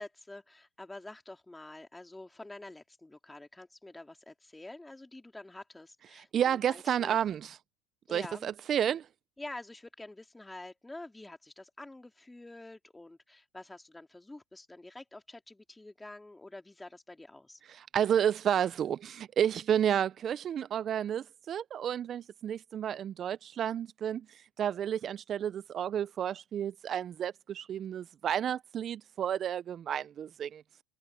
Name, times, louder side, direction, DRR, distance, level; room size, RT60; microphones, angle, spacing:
voice 1, 0.0-7.2 8.1-8.5 9.4-17.6, left 2 dB, 10° left, 3.1 m, -47 dB
voice 2, 6.1-7.6 8.1-9.1 17.7-30.6, right 9 dB, 40° right, 0.5 m, -31 dB
supercardioid pair, 95°, 0 cm